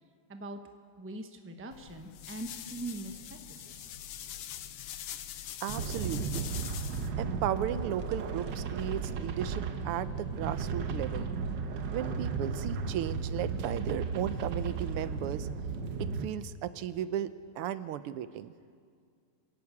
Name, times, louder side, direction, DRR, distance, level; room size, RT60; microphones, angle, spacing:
voice 1, 0.3-0.6 1.0-3.7, right 2 dB, 10° right, 5 dB, 0.7 m, -42 dB
sound 1, 1.7-7.1, left 11 dB, 80° left, 1.7 m, -43 dB
voice 2, 5.6-6.5 7.2-11.3 11.9-15.5 16.0-18.5, right 11 dB, 85° right, 14 dB, 1.6 m, -35 dB
sound 2, 5.7-16.3, right 5 dB, 60° right, 1.6 m, -35 dB
27.5 x 11.0 x 8.5 m, 2.1 s
omnidirectional pair, 2.4 m